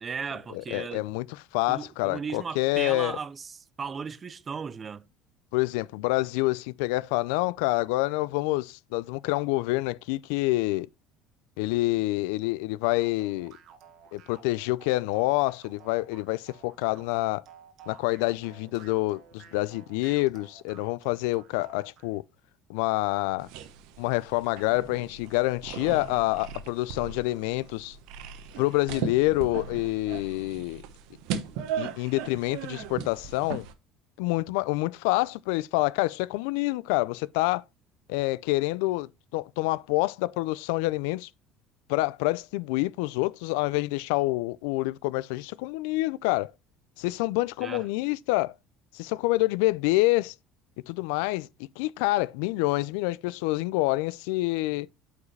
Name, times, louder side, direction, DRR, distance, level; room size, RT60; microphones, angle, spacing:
voice 1, 0.0-1.1 1.7-5.0 47.6-47.9, right 6 dB, 25° right, 0.5 m, -36 dB
voice 2, 0.5-1.3 1.5-3.1 5.5-10.9 11.6-13.5 14.1-17.4 17.9-22.2 22.7-23.5 24.0-28.0 28.6-30.8 31.8-33.6 34.2-37.6 38.1-41.3 41.9-46.5 47.0-48.5 48.9-50.3 50.9-51.5 51.8-54.9, left 20 dB, 90° left, 0.3 m, -27 dB
sound 1, 12.8-22.1, right 8 dB, 55° right, 1.3 m, -53 dB
sound 2, 23.4-33.7, right 8 dB, 75° right, 0.9 m, -38 dB
8.4 x 4.8 x 3.2 m
cardioid pair, 130°, 0 cm